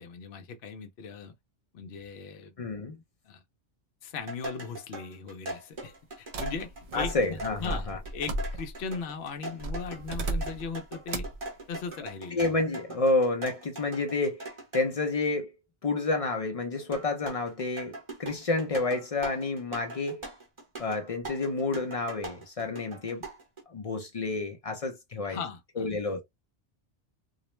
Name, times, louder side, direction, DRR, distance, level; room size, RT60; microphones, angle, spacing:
voice 1, 0.0-1.3 1.7-2.6 3.3-3.4 4.0-11.3 11.7-12.4 25.2-25.9, left 5 dB, 70° left, 0.8 m, -38 dB
voice 2, 2.6-3.0 6.9-8.0 12.3-14.4 14.7-15.5 15.8-20.3 20.8-23.2 23.7-25.4 25.8-26.2, left 3 dB, 50° left, 0.4 m, -29 dB
sound 1, 4.2-14.9 16.9-23.6, right 2 dB, 30° right, 0.8 m, -41 dB
sound 2, 6.3-8.9 9.6-10.7 11.1-11.4, right 2 dB, 60° right, 0.4 m, -35 dB
2.4 x 2.1 x 3.0 m
omnidirectional pair, 1.2 m